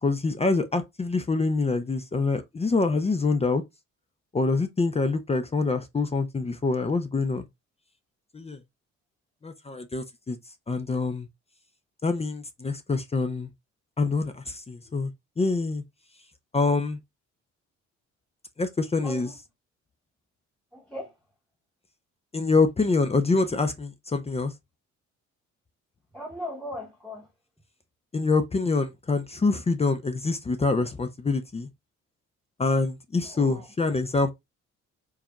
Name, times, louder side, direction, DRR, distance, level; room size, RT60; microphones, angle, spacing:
voice 1, 0.0-3.6 4.3-7.5 8.3-8.6 9.4-10.4 10.7-11.3 12.0-13.5 14.0-15.1 15.4-15.8 16.5-17.0 18.6-19.3 22.3-24.5 28.1-31.7 32.6-34.3, left 3 dB, 20° left, 0.5 m, -25 dB
voice 2, 19.0-19.3 20.7-21.1 26.1-27.3 33.2-33.7, left 1 dB, ahead, 1.1 m, -38 dB
4.7 x 2.3 x 2.9 m
cardioid pair, 90°, 30 cm